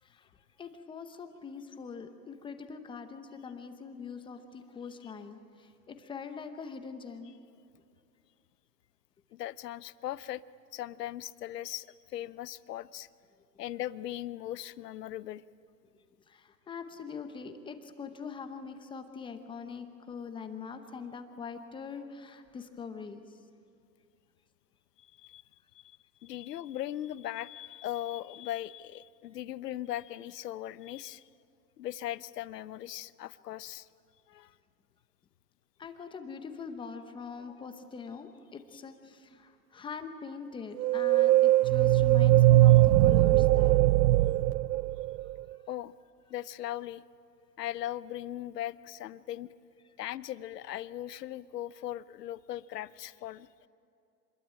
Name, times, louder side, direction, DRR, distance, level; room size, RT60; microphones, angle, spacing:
voice 1, 0.0-7.3 16.3-23.4 35.8-43.9 44.7-44.8 45.5-45.6 49.8-49.9, left 5 dB, 10° left, 7 dB, 0.9 m, -43 dB
voice 2, 9.3-10.4 10.7-13.1 13.6-15.4 25.0-25.4 25.7-31.2 31.8-33.9 34.3-34.5 45.7-45.9 46.3-47.0 47.6-49.5 50.0-53.7, left 13 dB, 70° left, 17 dB, 1.0 m, -39 dB
sound 1, 40.8-45.4, right 15 dB, 75° right, 0.6 m, -21 dB
26.5 x 21.5 x 9.0 m, 2.6 s
hypercardioid pair, 150°, 49 cm